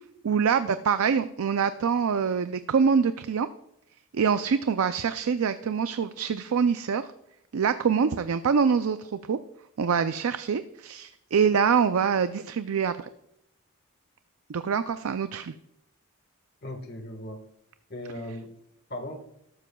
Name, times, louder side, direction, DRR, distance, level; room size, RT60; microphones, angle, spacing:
voice 1, 0.2-3.5 4.1-7.0 7.5-9.4 9.8-13.1 14.5-15.5, right 6 dB, 75° right, 11 dB, 0.4 m, -25 dB
voice 2, 16.6-17.4 17.9-18.5 18.9-19.1, left 1 dB, 45° left, 5 dB, 1.5 m, -37 dB
13.0 x 12.5 x 2.3 m, 0.79 s
head